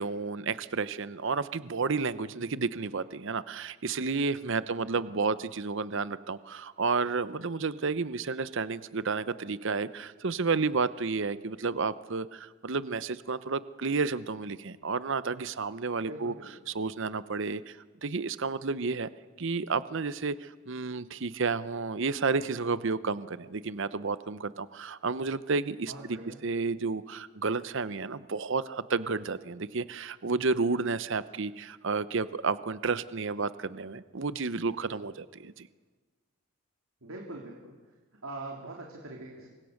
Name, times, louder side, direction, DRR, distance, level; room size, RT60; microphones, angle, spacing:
voice 1, 0.0-16.3 16.7-17.8 18.0-19.1 19.4-26.2 26.4-35.7, right 4 dB, 60° right, 15 dB, 0.8 m, -31 dB
voice 2, 4.6-5.2 16.0-16.5 25.9-26.4 34.6-35.1 37.0-37.7 38.2-39.5, right 2 dB, 85° right, 0 dB, 3.2 m, -43 dB
29.0 x 24.0 x 6.5 m, 1.3 s
head